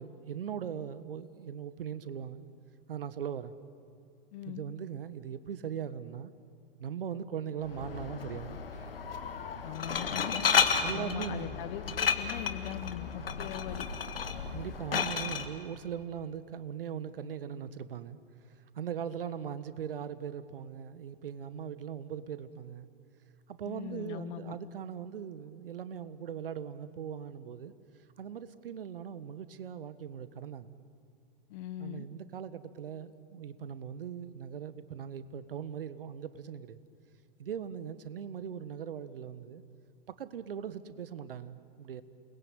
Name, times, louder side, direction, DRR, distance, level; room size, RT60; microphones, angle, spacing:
voice 1, 0.0-2.5 2.9-3.5 4.5-6.3 6.8-8.9 10.8-11.7 14.5-18.2 18.7-22.9 23.5-27.7 28.2-30.8 31.8-36.8 37.4-39.6 40.2-42.0, right 8 dB, 70° right, 14 dB, 1.4 m, -40 dB
voice 2, 4.3-4.6 9.6-10.5 10.9-13.9 23.6-24.6 31.5-32.1, left 12 dB, 50° left, 13 dB, 1.6 m, -40 dB
Glass, 7.6-15.5, left 6 dB, 80° left, 1.9 m, -32 dB
29.0 x 21.0 x 8.9 m, 2.3 s
figure-of-eight pair, 100°, 29 cm